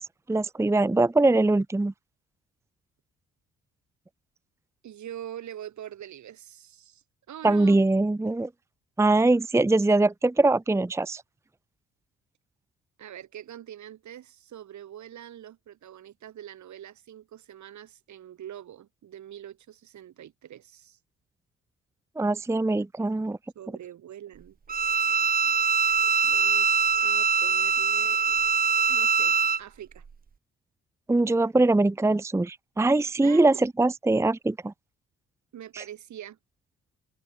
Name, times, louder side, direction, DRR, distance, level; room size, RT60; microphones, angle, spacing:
voice 1, 0.3-1.9 7.4-8.5 9.0-11.2 22.2-23.4 31.1-34.7 35.7-35.8, right 2 dB, 10° right, 0.7 m, -22 dB
voice 2, 4.8-7.8 13.0-21.0 23.5-24.6 26.2-28.2 28.9-30.0 33.2-33.6 35.5-36.4, right 11 dB, 70° right, 6.1 m, -44 dB
Bowed string instrument, 24.7-29.6, right 6 dB, 30° right, 1.1 m, -23 dB
open air
cardioid pair, 90°, 30 cm